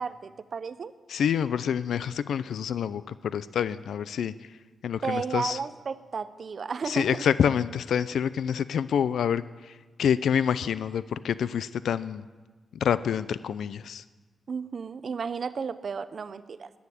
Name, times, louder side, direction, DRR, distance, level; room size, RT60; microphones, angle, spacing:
voice 1, 0.0-0.9 5.0-7.2 14.5-16.8, right 5 dB, 45° right, 14 dB, 0.6 m, -33 dB
voice 2, 1.1-4.5 4.8-5.6 6.9-12.3 12.8-14.0, left 8 dB, 85° left, 16 dB, 0.4 m, -27 dB
11.0 x 9.4 x 9.8 m, 1.3 s
wide cardioid pair, 165°, 0 cm